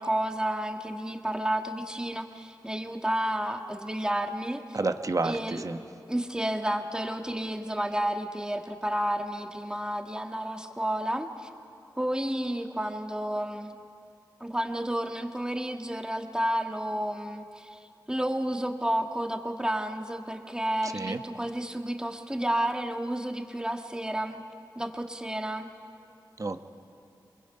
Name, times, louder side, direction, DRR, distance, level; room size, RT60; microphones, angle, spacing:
voice 1, 0.0-4.8 5.2-5.6 6.1-11.5 12.0-13.7 14.4-17.8 18.1-24.4 24.8-25.7, right 1 dB, 10° right, 5 dB, 1.7 m, -31 dB
voice 2, 4.7-5.8 20.8-21.2 26.4-26.6, right 3 dB, 45° right, 8 dB, 1.1 m, -30 dB
28.0 x 22.0 x 5.6 m, 2.6 s
cardioid pair, 50°, 8 cm